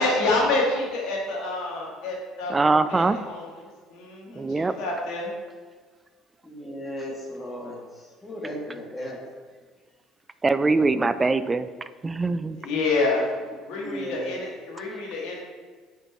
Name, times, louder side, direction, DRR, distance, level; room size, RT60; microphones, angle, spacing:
voice 1, 0.0-5.3 12.6-13.3 13.6-15.4, left 2 dB, 60° left, -3 dB, 2.2 m, -27 dB
voice 2, 2.5-3.2 4.4-4.7 10.4-11.6 12.0-12.6, right 3 dB, 20° right, 13 dB, 0.4 m, -22 dB
voice 3, 6.4-7.8 8.2-9.2 13.7-14.3, equal, 20° left, -2 dB, 2.3 m, -35 dB
8.8 x 6.4 x 3.1 m, 1.5 s
figure-of-eight pair, 60°, 0 cm